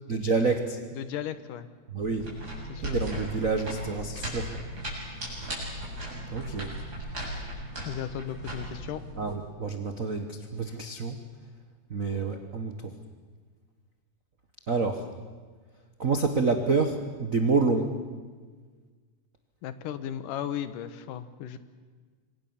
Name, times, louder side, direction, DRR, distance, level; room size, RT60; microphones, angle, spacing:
voice 1, 0.1-0.8 1.9-2.3 2.8-4.5 6.3-6.7 9.2-11.2 11.9-12.7 14.7-15.1 16.0-17.9, right 4 dB, 55° right, 6 dB, 0.9 m, -28 dB
voice 2, 1.0-1.7 2.7-3.0 7.9-9.0 19.6-21.6, left 10 dB, 85° left, 12 dB, 2.7 m, -35 dB
sound 1, 2.0-9.3, equal, 25° right, 8.2 m, -37 dB
27.0 x 24.0 x 7.2 m, 1.5 s
omnidirectional pair, 3.7 m